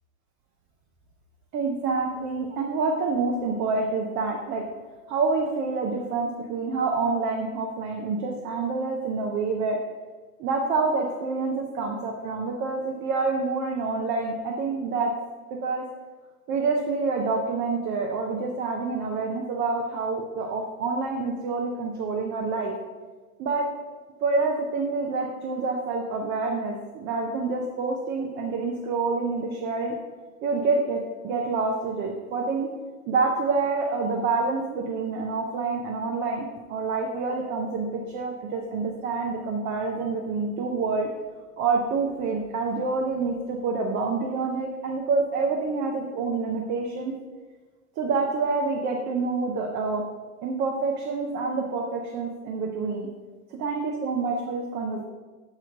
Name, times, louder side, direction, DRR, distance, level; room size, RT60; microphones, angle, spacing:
voice 1, 1.5-4.6 5.1-9.8 10.4-15.1 15.6-15.8 16.5-22.7 23.4-23.6 24.2-29.9 30.4-32.7 33.1-41.1 41.6-47.1 48.0-50.1 50.4-53.1 53.6-55.0, right 4 dB, 25° right, 0 dB, 0.6 m, -27 dB
7.6 x 3.1 x 5.0 m, 1.3 s
hypercardioid pair, 130°, 44 cm